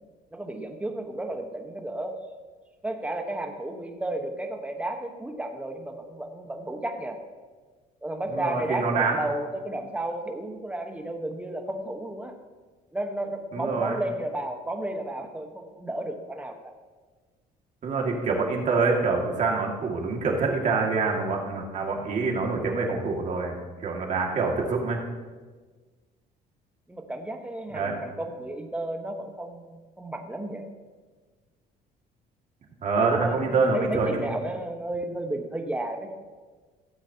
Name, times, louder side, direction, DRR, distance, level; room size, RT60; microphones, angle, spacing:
voice 1, 0.3-2.2 2.8-7.2 8.0-12.3 12.9-16.7 26.9-30.6 33.0-36.1, right 1 dB, 10° right, 4 dB, 1.1 m, -33 dB
voice 2, 8.3-9.2 13.5-14.0 17.8-23.5 23.8-25.0 27.7-27.9 32.8-34.2, right 4 dB, 45° right, -1 dB, 2.1 m, -26 dB
15.5 x 8.1 x 2.8 m, 1.4 s
cardioid pair, 110°, 17 cm